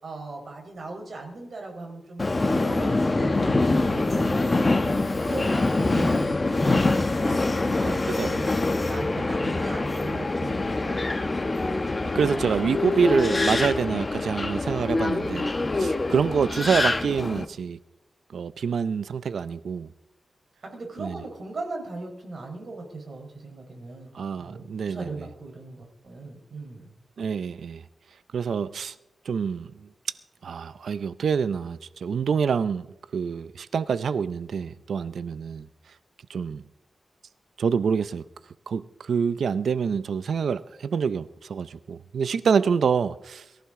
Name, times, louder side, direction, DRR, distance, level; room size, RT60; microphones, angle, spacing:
voice 1, 0.0-4.8 5.2-8.5 8.9-11.0 20.7-26.9, right 3 dB, 50° right, 4.0 m, -39 dB
Subway metro underground, 2.2-17.4, left 2 dB, 25° left, 1.0 m, -25 dB
voice 2, 7.8-8.3 12.1-15.5 15.8-17.8 18.3-19.9 21.0-21.2 24.1-25.1 27.2-27.8 28.3-28.9 29.3-29.7 30.4-32.9 33.1-35.7 36.3-36.6 37.6-38.2 38.7-43.4, right 6 dB, 80° right, 0.5 m, -26 dB
22.5 x 15.0 x 3.7 m
wide cardioid pair, 160°, 0 cm